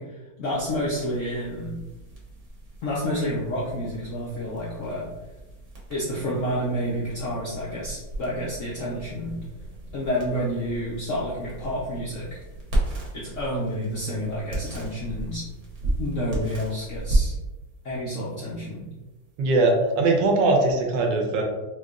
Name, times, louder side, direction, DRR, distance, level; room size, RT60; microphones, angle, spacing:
voice 1, 0.0-1.7 2.8-5.0 5.9-9.3 9.9-12.4 13.1-15.5 16.0-17.4 17.8-18.9, equal, 70° left, -6 dB, 0.7 m, -29 dB
sound 1, 0.5-20.1, right 1 dB, 50° right, 0.9 m, -34 dB
voice 2, 19.4-21.4, right 2 dB, 75° right, 1 dB, 1.3 m, -21 dB
4.6 x 2.3 x 2.4 m, 1.1 s
omnidirectional pair, 2.1 m